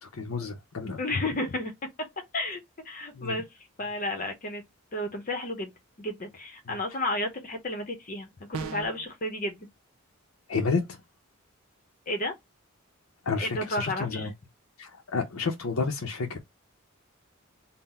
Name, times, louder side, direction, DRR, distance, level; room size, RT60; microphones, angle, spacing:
voice 1, 0.0-1.0 3.1-3.4 6.7-6.8 10.5-11.0 13.2-14.3 14.8-16.4, left 4 dB, 75° left, 0.6 m, -30 dB
voice 2, 1.0-1.7 2.3-3.4 3.8-4.6 4.9-5.7 6.0-9.7 12.1-12.3 13.4-14.3, left 1 dB, 40° left, 0.7 m, -32 dB
sound 1, 8.5-9.1, right 5 dB, 75° right, 0.4 m, -36 dB
3.8 x 2.1 x 4.1 m
head